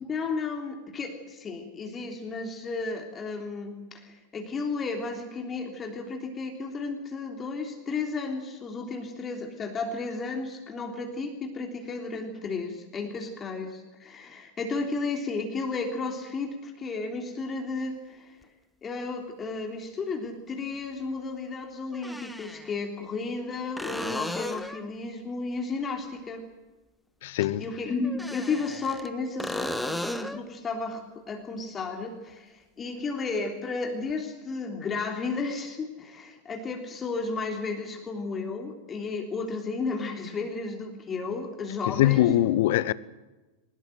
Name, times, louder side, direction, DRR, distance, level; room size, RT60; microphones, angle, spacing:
voice 1, 0.0-18.4 18.8-26.4 27.6-42.4, left 4 dB, 20° left, 3.3 m, -33 dB
sound 1, 18.4-18.5 20.6-20.7 21.9-22.7 23.8-24.9 28.0-29.1 29.4-30.4 34.1-34.2, left 1 dB, 5° left, 1.5 m, -35 dB
voice 2, 27.2-27.6 41.9-42.9, left 14 dB, 55° left, 0.8 m, -22 dB
23.0 x 20.5 x 7.8 m
figure-of-eight pair, 90°, 0 cm